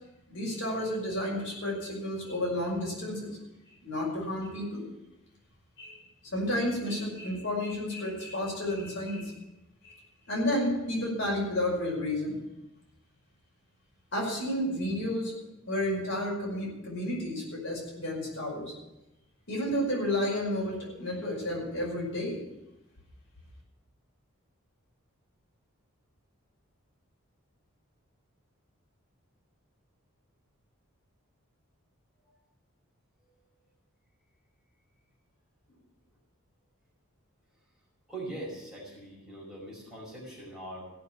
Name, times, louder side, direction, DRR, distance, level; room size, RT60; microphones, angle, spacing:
voice 1, 0.3-3.4 3.8-4.8 5.8-6.0 6.3-9.3 9.8-10.0 10.3-12.4 14.1-15.4 15.7-18.7 19.5-22.4, left 1 dB, 55° left, -3 dB, 5.4 m, -31 dB
voice 2, 38.1-40.9, right 1 dB, 5° right, -6 dB, 5.0 m, -42 dB
16.0 x 6.7 x 9.0 m, 0.95 s
head